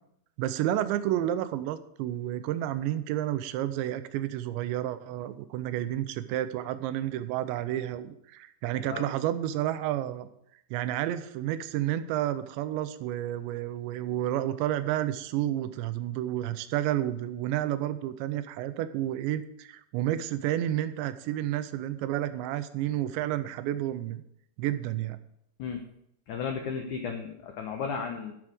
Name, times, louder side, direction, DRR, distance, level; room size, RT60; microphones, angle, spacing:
voice 1, 0.4-10.3 10.7-24.2 24.6-25.2, right 12 dB, 85° right, 12 dB, 3.0 m, -30 dB
voice 2, 8.7-9.1 25.6-25.8 26.3-28.3, left 6 dB, 85° left, 4 dB, 1.7 m, -34 dB
12.5 x 6.2 x 7.7 m, 0.75 s
omnidirectional pair, 5.1 m